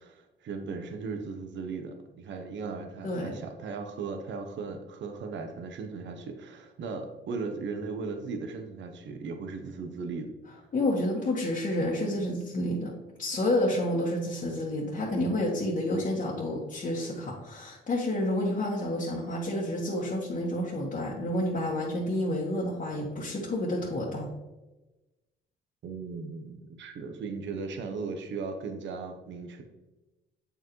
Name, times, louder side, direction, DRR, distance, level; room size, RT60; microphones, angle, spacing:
voice 1, 0.0-10.3 25.8-29.6, right 4 dB, 70° right, 5 dB, 0.9 m, -37 dB
voice 2, 3.0-3.4 10.7-12.9 13.2-24.3, left 1 dB, 40° left, -5 dB, 1.4 m, -29 dB
7.8 x 5.0 x 3.1 m, 1.1 s
cardioid pair, 90°, 20 cm